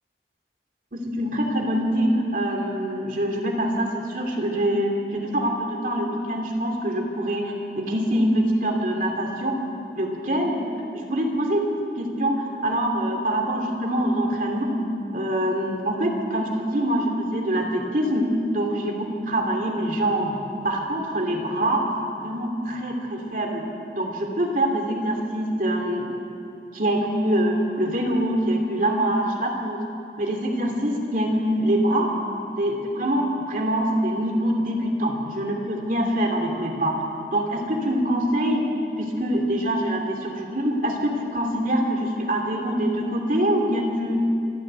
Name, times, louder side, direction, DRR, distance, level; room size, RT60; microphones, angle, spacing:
voice 1, 0.9-9.6 9.9-10.6 10.9-11.7 11.9-14.8 15.1-20.4 20.6-23.6 23.9-26.0 26.7-29.8 30.2-32.1 32.6-37.0 37.3-38.7 39.0-44.2, right 1 dB, 50° right, 1 dB, 2.7 m, -24 dB
26.5 x 11.0 x 9.1 m, 2.6 s
head